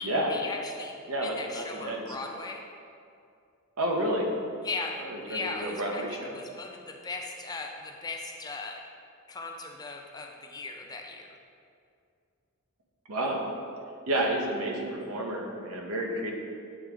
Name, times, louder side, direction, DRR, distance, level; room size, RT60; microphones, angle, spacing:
voice 1, 0.0-2.6 4.6-8.8 9.3-11.3, left 3 dB, 20° left, 2 dB, 0.4 m, -38 dB
voice 2, 1.1-2.0 3.8-4.3 5.0-6.4 13.1-13.4 14.1-16.3, right 1 dB, 85° right, 0 dB, 0.9 m, -30 dB
8.4 x 3.6 x 3.5 m, 2.4 s
head